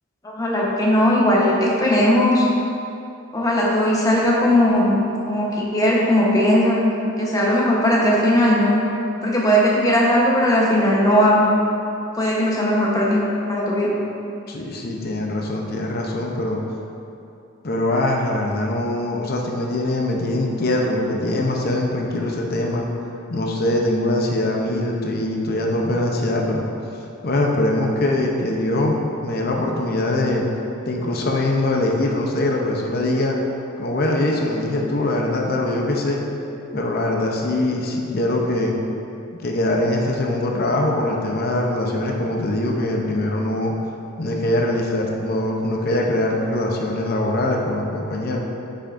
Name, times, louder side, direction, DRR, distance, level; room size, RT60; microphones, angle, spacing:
voice 1, 0.2-2.5 3.3-5.0 5.3-6.8 7.2-8.8 9.2-11.5 12.1-13.2 13.5-14.0, equal, 15° left, -4 dB, 1.0 m, -18 dB
voice 2, 14.5-16.6 17.6-22.9 23.3-26.7 27.2-30.4 30.9-33.4 33.8-36.2 36.7-38.8 39.4-43.7 44.2-48.4, left 1 dB, 50° left, 0 dB, 0.7 m, -22 dB
8.4 x 5.7 x 2.6 m, 2.7 s
head